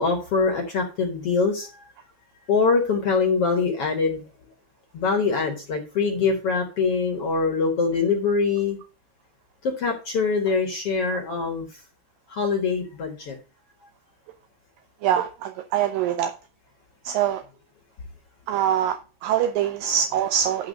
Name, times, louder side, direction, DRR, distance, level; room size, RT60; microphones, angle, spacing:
voice 1, 0.0-1.7 2.5-4.2 4.9-8.8 9.6-11.7 12.3-13.4, left 4 dB, 55° left, 2 dB, 1.7 m, -23 dB
voice 2, 15.0-16.3 17.0-17.4 18.5-20.7, right 9 dB, 80° right, 6 dB, 2.2 m, -24 dB
11.0 x 3.6 x 6.4 m, 0.34 s
omnidirectional pair, 4.5 m